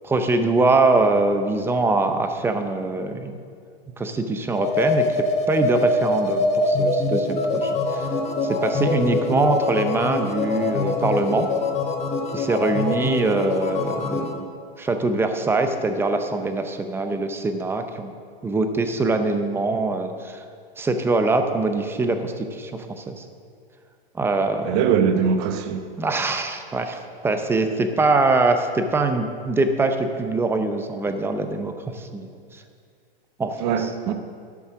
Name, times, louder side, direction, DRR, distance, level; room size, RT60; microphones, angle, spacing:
voice 1, 0.0-3.4 4.0-8.1 8.4-11.5 12.3-14.5 14.8-18.1 18.4-20.4 20.8-23.2 24.1-24.8 26.0-32.6 33.4-34.1, right 3 dB, 10° right, 0.5 m, -23 dB
sound 1, 4.5-14.3, left 3 dB, 20° left, 1.0 m, -24 dB
voice 2, 24.7-25.8 33.6-34.1, right 7 dB, 40° right, 0.9 m, -21 dB
12.0 x 7.1 x 5.9 m
hypercardioid pair, 140°, 30 cm